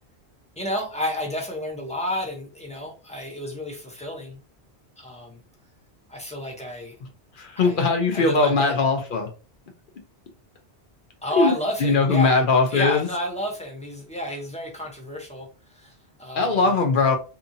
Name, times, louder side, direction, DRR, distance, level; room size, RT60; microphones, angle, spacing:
voice 1, 0.6-4.4 5.0-5.4 6.1-7.0 7.6-7.8 8.1-8.7 11.2-12.4 12.7-16.7, equal, 10° left, 0 dB, 0.6 m, -31 dB
voice 2, 7.4-9.3 11.3-11.5 11.8-13.1 16.3-17.2, left 3 dB, 60° left, 3 dB, 0.7 m, -20 dB
2.6 x 2.5 x 2.6 m, 0.34 s
omnidirectional pair, 1.1 m